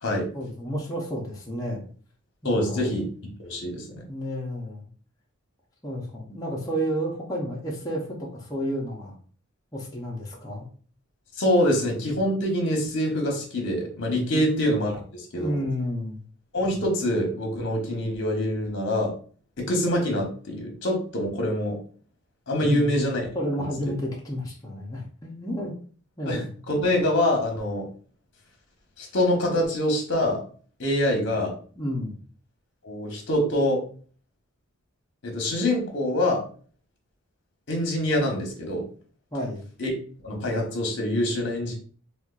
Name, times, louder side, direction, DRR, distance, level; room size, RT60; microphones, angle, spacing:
voice 1, 0.3-1.8 2.4-2.9 4.1-4.9 5.8-9.2 9.7-10.7 14.3-14.4 15.3-16.2 22.6-22.9 23.3-25.7 26.2-26.5 31.1-31.3 31.8-32.1 39.3-39.6, equal, 15° left, -3 dB, 0.6 m, -31 dB
voice 2, 2.4-3.0 3.4-3.8 11.4-15.6 16.5-19.1 19.6-21.8 22.5-23.2 23.6-23.7 26.3-27.9 29.0-30.4 30.8-31.5 32.8-33.8 35.2-36.4 37.7-38.9 39.8-39.9 40.2-41.7, left 1 dB, 55° left, 1 dB, 1.0 m, -25 dB
4.3 x 2.3 x 2.4 m, 0.42 s
head